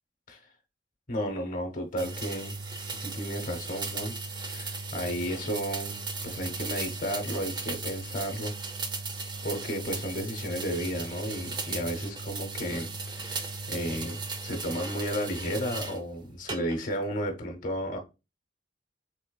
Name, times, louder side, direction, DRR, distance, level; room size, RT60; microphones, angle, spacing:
voice 1, 1.1-2.5 2.9-6.0 6.2-8.5 9.4-18.0, equal, 45° left, 0.7 m, -33 dB
sound 1, 2.0-16.0 16.5-17.0, right 3 dB, 25° right, 0.4 m, -36 dB
3.3 x 3.2 x 2.2 m
head